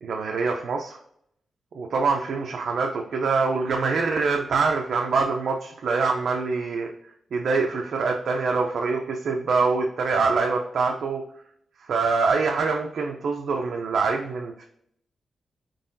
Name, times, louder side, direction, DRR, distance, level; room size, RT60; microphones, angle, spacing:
voice 1, 0.0-1.0 1.7-11.2 11.8-14.6, right 4 dB, 65° right, 1 dB, 0.5 m, -25 dB
4.6 x 3.9 x 2.6 m, 0.71 s
wide cardioid pair, 125°, 0 cm